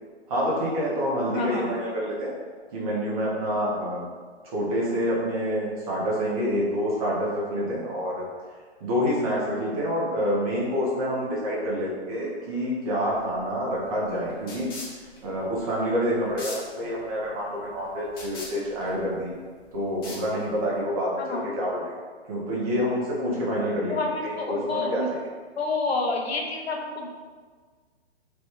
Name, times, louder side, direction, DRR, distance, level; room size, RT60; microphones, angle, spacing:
voice 1, 0.3-2.3 2.7-4.0 4.4-8.2 8.8-14.7 15.2-19.3 19.7-21.9 22.3-25.0, equal, 35° right, -6 dB, 0.9 m, -27 dB
voice 2, 1.3-1.7 21.2-21.5 23.9-25.1 25.6-27.1, left 3 dB, 65° left, 1 dB, 0.6 m, -28 dB
sound 1, 13.1-20.8, left 2 dB, 20° left, 0.5 m, -43 dB
3.1 x 2.3 x 3.1 m, 1.5 s
figure-of-eight pair, 125°, 34 cm